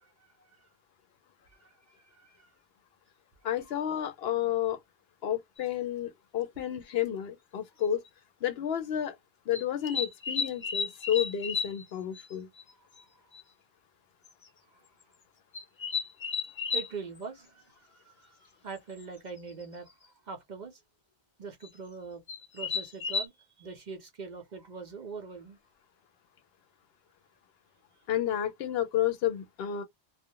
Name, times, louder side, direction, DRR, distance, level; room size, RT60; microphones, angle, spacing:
voice 1, 2.2-2.5 16.7-18.3 18.6-19.9 20.3-20.8 21.4-22.2 22.5-25.6, right 5 dB, 50° right, 0.6 m, -42 dB
voice 2, 3.4-4.8 5.2-8.0 8.4-9.1 9.5-12.5 28.1-29.8, left 10 dB, 70° left, 0.8 m, -31 dB
sound 1, 5.6-5.7 7.1-7.2 7.9-8.1 9.5-11.8 12.1-12.3 12.6-12.7 13.0-13.1 13.3-13.4 14.3-14.5 15.5-16.9 19.0-19.1 19.4-19.7 21.6-21.7 22.3-23.3, left 5 dB, 35° left, 0.5 m, -33 dB
2.4 x 2.1 x 2.8 m
omnidirectional pair, 1.1 m